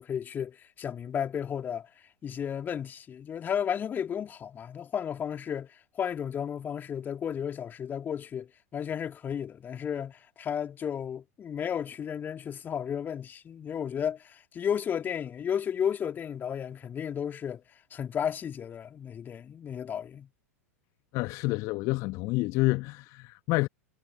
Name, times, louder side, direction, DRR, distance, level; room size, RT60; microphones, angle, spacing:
voice 1, 0.0-1.9 2.2-17.6 17.9-20.3, left 8 dB, 25° left, 3.1 m, -33 dB
voice 2, 21.1-23.7, left 23 dB, 40° left, 1.4 m, -28 dB
figure-of-eight pair, 90°, 8 cm